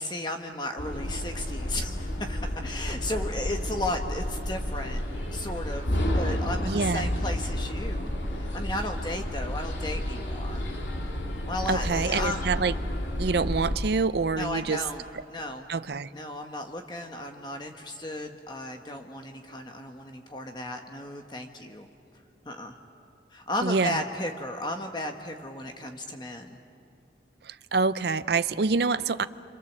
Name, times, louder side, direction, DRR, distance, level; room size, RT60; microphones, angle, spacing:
voice 1, 0.0-5.0 5.3-10.6 11.4-12.5 14.4-15.0 15.3-15.7 16.1-21.9 22.5-22.8 23.3-26.6, left 1 dB, 25° left, 4 dB, 1.1 m, -34 dB
sound 1, 0.8-13.8, left 1 dB, 80° left, 2.6 m, -31 dB
voice 2, 6.6-7.1 11.7-12.7 13.2-14.8 15.7-16.1 23.6-24.0 27.5-29.3, right 4 dB, 60° right, 14 dB, 0.5 m, -26 dB
29.5 x 25.5 x 7.3 m, 2.6 s
head